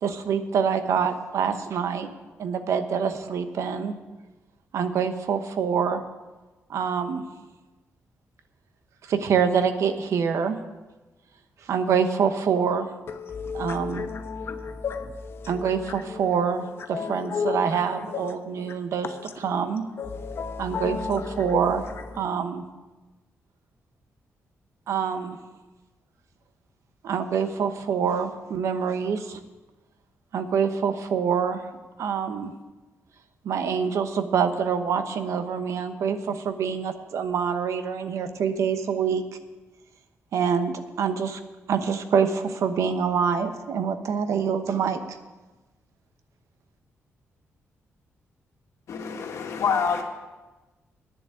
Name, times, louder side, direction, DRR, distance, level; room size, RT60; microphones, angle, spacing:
voice 1, 0.0-2.1 2.4-3.9 4.7-6.0 6.7-7.2 9.1-10.6 11.7-12.9 13.5-14.0 15.5-19.1 19.4-19.8 20.6-21.8 22.2-22.6 24.9-25.4 27.0-29.4 30.3-31.6 32.0-32.5 33.4-39.2 40.3-41.4 41.7-45.2, right 6 dB, 75° right, 9 dB, 1.0 m, -25 dB
voice 2, 13.1-19.7 20.0-22.2, left 5 dB, 50° left, 7 dB, 1.0 m, -34 dB
voice 3, 48.9-50.0, left 6 dB, 70° left, 3 dB, 1.7 m, -26 dB
10.0 x 7.3 x 9.0 m, 1.2 s
wide cardioid pair, 140°, 5 cm